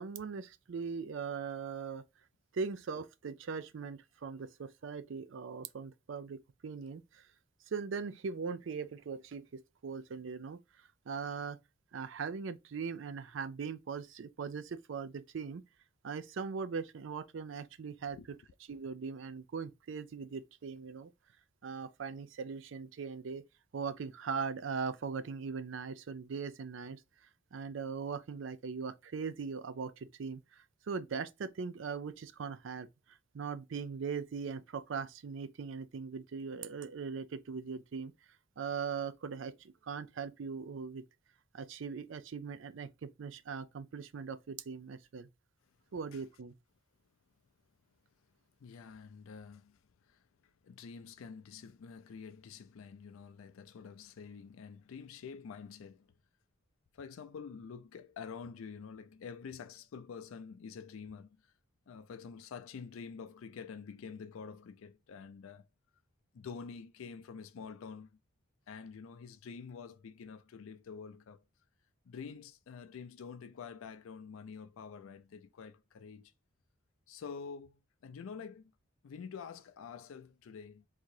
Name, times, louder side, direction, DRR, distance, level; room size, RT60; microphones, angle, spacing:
voice 1, 0.0-2.0 2.5-7.3 7.7-10.6 11.1-11.6 11.9-15.6 16.0-18.2 18.7-21.1 21.6-23.4 23.7-27.0 27.5-38.1 38.6-41.0 41.5-45.3 45.9-46.5, right 5 dB, 65° right, 0.4 m, -40 dB
voice 2, 48.6-56.1 56.9-61.5 61.9-65.7 66.3-68.2 68.7-71.4 72.1-76.3 77.1-78.7 79.0-80.9, left 6 dB, 80° left, 0.4 m, -48 dB
3.7 x 2.8 x 4.6 m
head